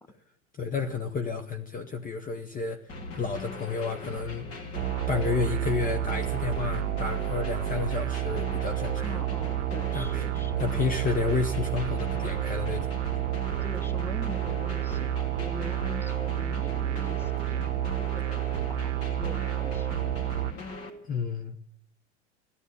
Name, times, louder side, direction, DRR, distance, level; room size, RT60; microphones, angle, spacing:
voice 1, 0.6-2.8 3.1-4.5 5.1-9.2 9.9-10.2 10.6-12.9 21.0-21.5, left 5 dB, 25° left, 6 dB, 1.0 m, -31 dB
sound 1, 2.9-20.9, left 3 dB, 40° left, 2.8 m, -40 dB
sound 2, 4.7-20.5, right 14 dB, 80° right, 0.6 m, -30 dB
voice 2, 9.0-10.7 13.5-17.7 18.1-18.4 18.7-18.9 19.2-20.3, left 2 dB, 5° left, 11 dB, 1.3 m, -43 dB
14.5 x 11.5 x 8.2 m, 0.69 s
hypercardioid pair, 85°, 35 cm